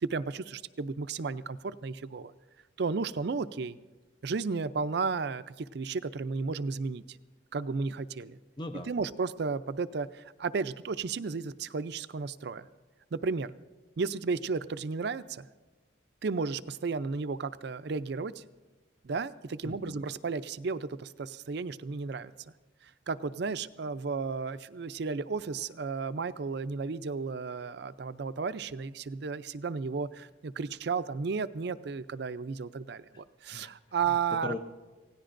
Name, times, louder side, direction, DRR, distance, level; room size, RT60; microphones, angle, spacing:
voice 1, 0.0-2.3 2.8-3.8 4.2-7.0 7.5-8.4 8.9-12.7 13.1-13.5 14.0-15.5 16.2-18.4 19.0-22.3 22.8-34.6, right 4 dB, 60° right, 13 dB, 0.5 m, -33 dB
voice 2, 8.6-8.9 19.6-20.0 33.1-33.7 34.0-34.6, left 2 dB, 25° left, 7 dB, 0.5 m, -40 dB
27.0 x 17.0 x 2.6 m, 1.3 s
head